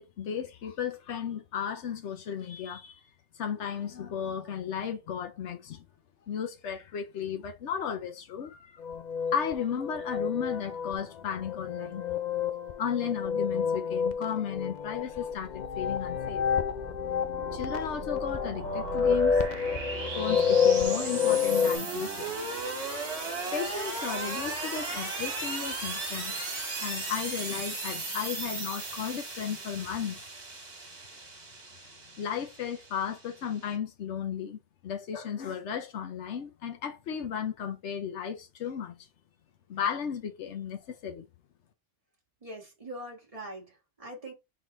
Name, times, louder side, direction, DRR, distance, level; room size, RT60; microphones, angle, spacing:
voice 1, 0.0-3.0 3.4-5.8 6.3-8.7 9.3-12.1 12.8-16.5 17.5-19.6 20.2-22.4 23.0-26.4 26.8-30.2 32.2-38.9 39.7-41.2, left 8 dB, 85° left, 1.1 m, -35 dB
sound 1, 8.8-21.8, left 6 dB, 55° left, 0.5 m, -29 dB
sound 2, 15.0-33.7, right 3 dB, 70° right, 1.9 m, -37 dB
voice 2, 42.4-44.3, right 1 dB, 30° right, 1.6 m, -42 dB
4.0 x 3.8 x 2.9 m
omnidirectional pair, 1.2 m